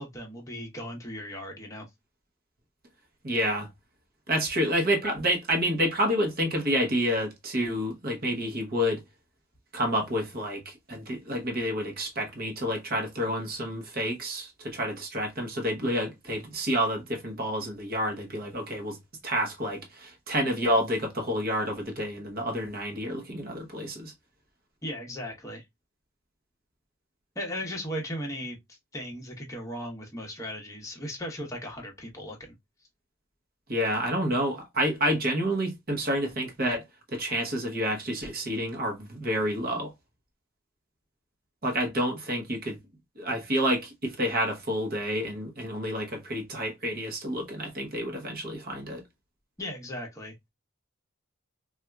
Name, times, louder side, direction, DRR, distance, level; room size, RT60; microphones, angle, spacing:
voice 1, 0.0-1.9 24.8-25.6 27.4-28.6 28.9-32.5 49.6-50.3, equal, 15° left, 0.8 m, -37 dB
voice 2, 3.2-3.7 4.3-9.0 9.7-19.0 19.2-24.1 33.7-36.8 37.1-39.9 41.6-42.8 43.2-49.0, equal, 40° right, 0.9 m, -29 dB
4.2 x 2.4 x 2.2 m
head